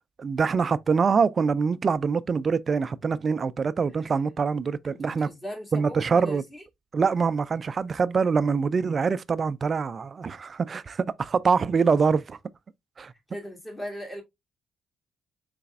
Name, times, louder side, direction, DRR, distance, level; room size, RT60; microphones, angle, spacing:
voice 1, 0.2-5.3 5.7-6.4 6.9-12.4 13.0-13.1, right 5 dB, 40° right, 0.3 m, -24 dB
voice 2, 4.9-6.6 13.3-14.2, equal, 20° left, 2.0 m, -39 dB
3.9 x 3.3 x 2.3 m
cardioid pair, 90°, 0 cm